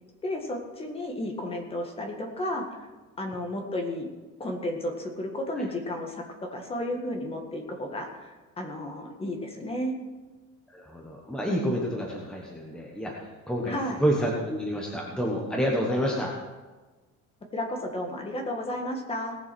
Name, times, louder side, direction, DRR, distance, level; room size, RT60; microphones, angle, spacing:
voice 1, 0.2-2.9 3.2-4.1 4.4-10.0 13.7-14.0 17.5-19.4, left 1 dB, 20° left, 2 dB, 1.8 m, -33 dB
voice 2, 10.7-16.3, equal, 5° left, -2 dB, 1.3 m, -29 dB
18.5 x 7.1 x 6.2 m, 1.2 s
cardioid pair, 160°, 29 cm